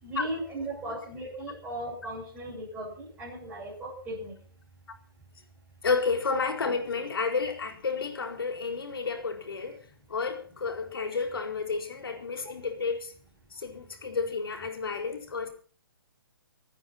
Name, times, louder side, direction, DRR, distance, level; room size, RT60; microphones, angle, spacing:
voice 1, 0.0-4.3, right 1 dB, 15° right, 7.3 m, -37 dB
voice 2, 5.8-9.8 10.1-13.1 13.5-15.5, left 4 dB, 85° left, 4.5 m, -31 dB
24.0 x 9.6 x 5.9 m
hypercardioid pair, 155°, 12 cm